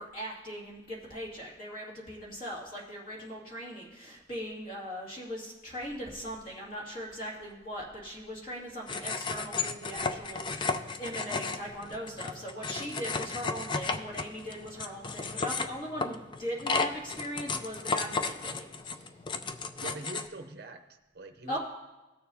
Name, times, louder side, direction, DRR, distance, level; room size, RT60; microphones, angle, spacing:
voice 1, 0.0-18.7 21.5-21.6, equal, 45° left, -4 dB, 2.4 m, -39 dB
sound 1, 8.9-20.3, left 4 dB, 25° left, 0.4 m, -34 dB
voice 2, 19.8-21.6, right 3 dB, 55° right, 5 dB, 0.7 m, -43 dB
18.5 x 6.8 x 2.7 m, 1.1 s
head